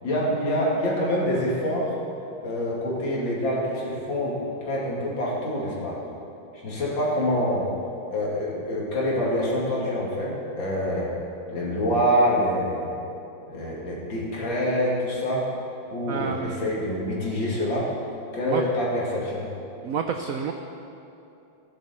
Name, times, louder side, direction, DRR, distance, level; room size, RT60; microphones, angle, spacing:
voice 1, 0.0-2.0 2.4-6.0 6.5-7.7 8.1-11.2 11.5-12.9 13.5-15.5 15.9-17.9 18.3-19.5, equal, 70° left, -5 dB, 3.2 m, -26 dB
voice 2, 16.1-16.7 18.5-18.6 19.8-20.5, right 7 dB, 85° right, 5 dB, 0.7 m, -29 dB
15.0 x 11.0 x 4.4 m, 2.8 s
omnidirectional pair, 2.2 m